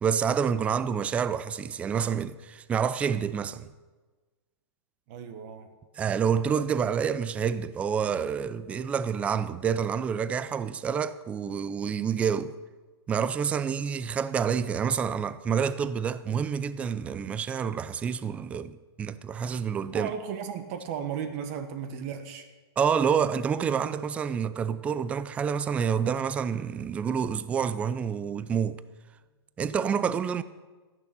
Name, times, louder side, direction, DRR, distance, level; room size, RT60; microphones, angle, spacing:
voice 1, 0.0-3.7 6.0-12.5 13.1-20.1 22.8-28.8 29.6-30.4, right 7 dB, 10° right, 0.4 m, -28 dB
voice 2, 5.1-5.7 19.9-22.5 23.2-23.3 23.8-24.0, right 8 dB, 35° right, 1.3 m, -35 dB
14.0 x 10.5 x 6.8 m
hypercardioid pair, 145°, 14 cm